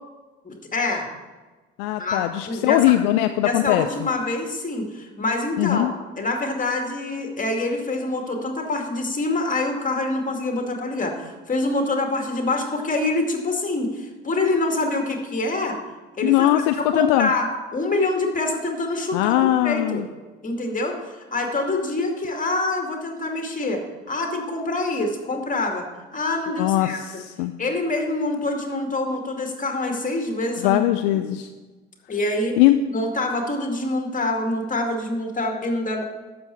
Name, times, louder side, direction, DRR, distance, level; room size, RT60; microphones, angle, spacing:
voice 1, 0.4-1.1 2.0-2.9 3.4-15.8 16.2-17.5 17.7-20.0 20.4-21.0 21.3-23.8 24.1-25.9 26.1-27.0 27.6-30.8 31.1-31.2 32.1-32.6 32.9-36.0, left 2 dB, 25° left, 3 dB, 2.3 m, -25 dB
voice 2, 1.8-3.9 5.6-5.9 16.2-17.3 19.1-20.1 26.6-27.5 30.6-31.5 32.6-32.8, left 15 dB, 65° left, 9 dB, 0.5 m, -20 dB
12.0 x 7.9 x 4.6 m, 1.3 s
figure-of-eight pair, 55°, 30 cm